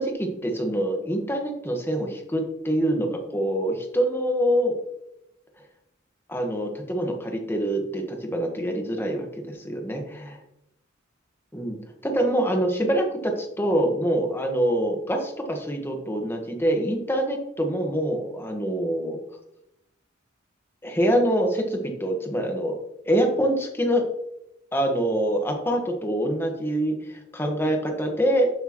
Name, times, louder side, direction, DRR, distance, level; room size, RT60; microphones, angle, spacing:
voice 1, 0.0-4.8 6.3-10.4 11.5-19.2 20.8-22.8 23.0-24.1 24.7-28.5, right 1 dB, 10° left, 2 dB, 1.3 m, -25 dB
12.5 x 6.5 x 3.0 m, 0.85 s
head